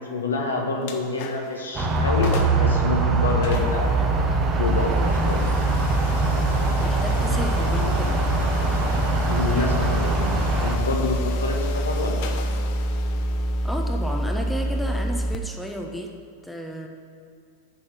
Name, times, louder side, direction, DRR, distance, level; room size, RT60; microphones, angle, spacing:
voice 1, 0.1-4.0 4.6-5.4 9.3-12.3, left 2 dB, 75° left, 1 dB, 1.5 m, -27 dB
sound 1, 0.8-1.6 2.0-2.1 2.2-2.7 3.4-16.2, left 7 dB, 50° left, 1.0 m, -38 dB
sound 2, 1.7-10.8, right 3 dB, 25° right, 1.1 m, -24 dB
sound 3, 3.5-15.4, equal, 30° left, 0.5 m, -26 dB
voice 2, 6.8-8.2 13.6-16.1 16.4-16.9, equal, ahead, 1 dB, 0.9 m, -32 dB
7.4 x 6.4 x 7.6 m, 2.3 s
figure-of-eight pair, 90°, 0 cm